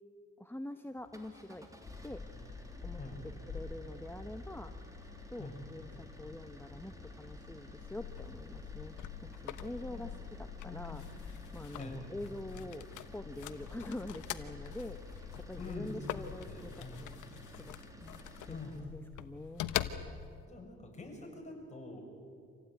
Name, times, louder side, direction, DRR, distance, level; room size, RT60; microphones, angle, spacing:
voice 1, 0.4-1.7 2.0-4.8 5.3-8.9 9.2-19.7, left 1 dB, 5° left, 7 dB, 1.1 m, -46 dB
sound 1, 1.0-18.9, equal, 10° right, 3.4 m, -53 dB
sound 2, 1.8-16.7, left 5 dB, 55° left, 5.0 m, -51 dB
sound 3, 7.8-20.5, left 11 dB, 80° left, 1.1 m, -44 dB
voice 2, 10.6-11.0 11.7-12.0 15.6-17.0 18.5-18.9 20.5-22.0, left 2 dB, 25° left, -1 dB, 7.0 m, -45 dB
26.5 x 16.5 x 9.3 m, 2.4 s
cardioid pair, 90°, 30 cm